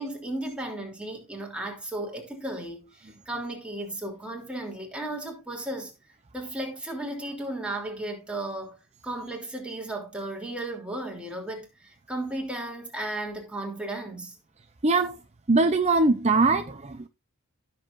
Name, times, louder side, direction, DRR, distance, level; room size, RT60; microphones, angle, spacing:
voice 1, 0.0-5.9 6.3-8.8 9.0-14.4, right 1 dB, 5° right, 3.1 m, -35 dB
voice 2, 14.8-15.2 15.5-17.1, right 3 dB, 30° right, 0.7 m, -22 dB
16.0 x 7.1 x 2.6 m
head